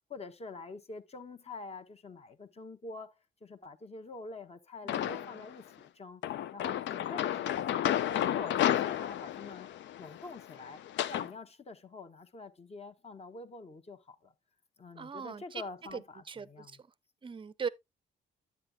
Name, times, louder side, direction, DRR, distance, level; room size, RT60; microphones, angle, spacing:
voice 1, 0.1-6.2 6.5-9.7 10.0-10.8 11.1-14.3 14.8-16.8, left 3 dB, 30° left, 1.0 m, -46 dB
voice 2, 4.8-5.4 15.0-15.6 15.9-16.8 17.2-17.7, right 6 dB, 25° right, 0.6 m, -40 dB
sound 1, 4.9-5.5 6.2-11.3, left 11 dB, 65° left, 0.5 m, -32 dB
9.6 x 8.0 x 2.3 m
cardioid pair, 90°, 20 cm